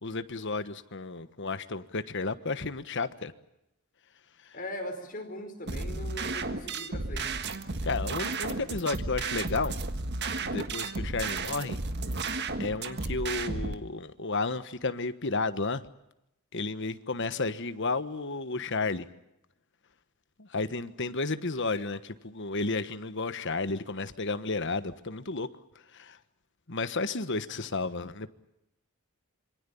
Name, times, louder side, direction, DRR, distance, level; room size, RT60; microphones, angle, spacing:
voice 1, 0.0-3.3 4.4-4.6 7.8-9.7 10.4-11.8 12.6-15.8 16.5-19.1 20.4-25.5 25.9-26.2 26.7-28.3, left 3 dB, 55° left, 12 dB, 1.3 m, -32 dB
voice 2, 4.5-7.5, left 1 dB, 40° left, 4 dB, 4.9 m, -40 dB
sound 1, 5.7-13.7, right 3 dB, 50° right, 1.6 m, -33 dB
26.5 x 24.0 x 7.1 m, 0.86 s
head